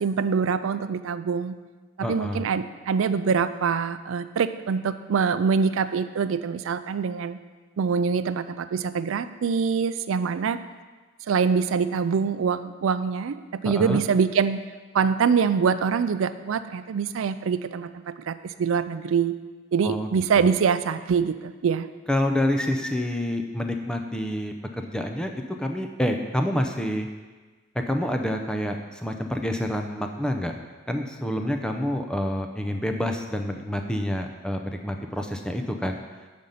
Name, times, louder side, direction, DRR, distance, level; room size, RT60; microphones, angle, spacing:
voice 1, 0.0-1.6 2.0-7.4 7.8-10.6 11.3-14.6 14.9-19.4 19.7-21.9, right 6 dB, 75° right, 12 dB, 0.4 m, -24 dB
voice 2, 2.0-2.5 13.6-14.0 19.8-20.1 20.4-20.5 22.1-27.1 27.7-30.5 30.9-36.0, left 1 dB, 5° left, 4 dB, 0.4 m, -28 dB
7.6 x 5.2 x 5.5 m, 1.3 s
head